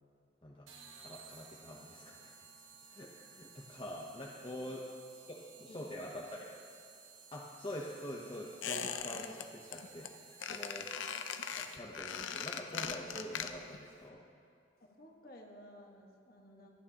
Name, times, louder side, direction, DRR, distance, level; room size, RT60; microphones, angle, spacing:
sound 1, 0.7-12.1, right 5 dB, 90° right, 1.3 m, -57 dB
voice 1, 1.0-2.3 2.9-4.8 5.3-6.5 7.3-10.9 11.5-14.2, left 1 dB, 25° left, -3 dB, 0.8 m, -45 dB
Squeak, 8.6-9.4 9.7-10.1 10.4-13.8 14.1-14.2, left 7 dB, 85° left, 0.6 m, -40 dB
voice 2, 15.0-16.7, left 1 dB, 50° left, 1 dB, 1.5 m, -55 dB
25.5 x 9.3 x 2.9 m, 2.4 s
head